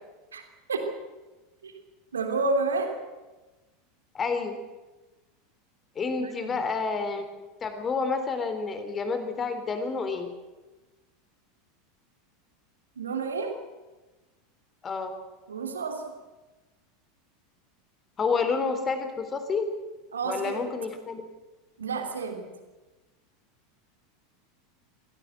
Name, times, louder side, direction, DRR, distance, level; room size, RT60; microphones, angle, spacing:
voice 1, 2.1-2.9 6.2-6.6 13.0-13.5 15.5-16.0 20.1-20.6 21.8-22.5, right 3 dB, 75° right, 4 dB, 3.2 m, -30 dB
voice 2, 4.1-4.6 6.0-7.2 7.6-10.3 14.8-15.1 18.2-19.7 20.2-21.2, left 4 dB, 25° left, 8 dB, 3.8 m, -29 dB
24.0 x 17.0 x 7.8 m, 1.2 s
figure-of-eight pair, 80°, 0 cm